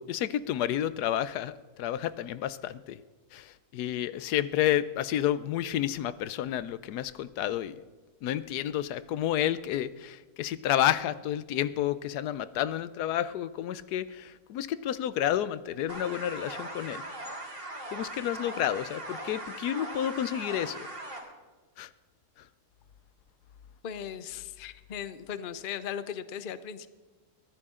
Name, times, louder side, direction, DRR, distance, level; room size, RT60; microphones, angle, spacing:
voice 1, 0.0-3.0 3.3-7.7 8.2-17.0 17.9-20.9 21.8-21.9, left 11 dB, 90° left, 15 dB, 1.2 m, -30 dB
sound 1, 15.9-21.2, right 2 dB, 50° right, 3.5 m, -40 dB
voice 2, 23.8-26.9, left 8 dB, 50° left, 13 dB, 0.7 m, -38 dB
22.5 x 15.0 x 3.7 m, 1.3 s
omnidirectional pair, 1.6 m